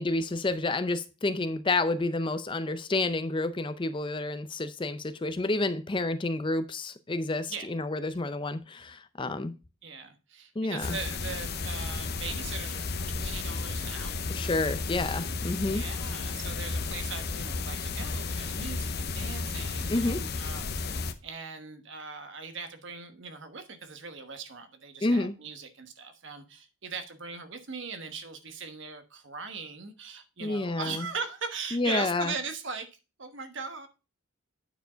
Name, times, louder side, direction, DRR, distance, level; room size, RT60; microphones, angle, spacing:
voice 1, 0.0-9.5 10.6-11.0 14.3-15.8 19.9-20.3 25.0-25.4 30.4-31.1 31.7-32.3, left 2 dB, 25° left, 0.5 m, -29 dB
voice 2, 9.8-14.4 15.6-20.9 21.2-32.9 33.2-33.9, right 5 dB, 55° right, 1.2 m, -40 dB
sound 1, 10.8-21.1, left 4 dB, 50° left, 0.7 m, -33 dB
9.1 x 4.7 x 5.0 m
head